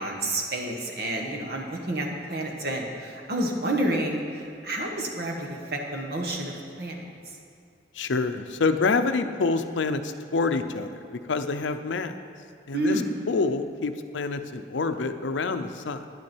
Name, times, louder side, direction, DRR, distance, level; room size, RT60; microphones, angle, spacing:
voice 1, 0.0-7.4 12.7-13.0, right 1 dB, 55° right, 0 dB, 1.4 m, -30 dB
voice 2, 7.9-12.2 12.7-13.0 13.3-16.1, left 4 dB, 85° left, 9 dB, 0.6 m, -27 dB
10.5 x 10.0 x 4.5 m, 2.4 s
head